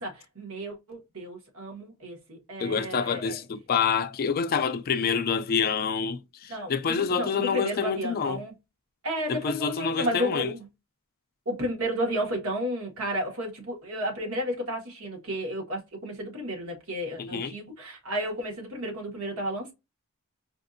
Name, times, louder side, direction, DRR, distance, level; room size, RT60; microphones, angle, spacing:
voice 1, 0.0-3.4 6.5-8.5 9.0-10.6 11.4-19.7, equal, 70° right, 1.7 m, -32 dB
voice 2, 2.6-8.4 9.3-10.5 17.2-17.5, left 6 dB, 45° left, 0.4 m, -27 dB
4.9 x 2.5 x 2.6 m
head